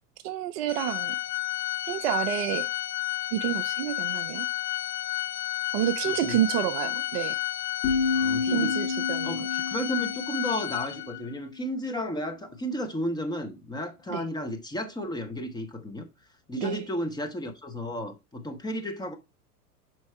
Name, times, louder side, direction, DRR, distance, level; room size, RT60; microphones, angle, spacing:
voice 1, 0.2-1.2 1.9-2.7 3.3-4.5 5.7-7.4 8.4-9.4 14.1-14.2 16.6-16.8, right 12 dB, 40° right, 0.6 m, -29 dB
Organ, 0.7-11.3, left 15 dB, 75° left, 0.6 m, -31 dB
voice 2, 6.1-6.4 8.1-8.8 9.2-16.1 16.5-19.1, equal, 10° left, 0.8 m, -33 dB
sound 1, 7.8-11.7, left 4 dB, 60° left, 1.3 m, -30 dB
6.3 x 4.5 x 4.2 m
figure-of-eight pair, 90°, 47 cm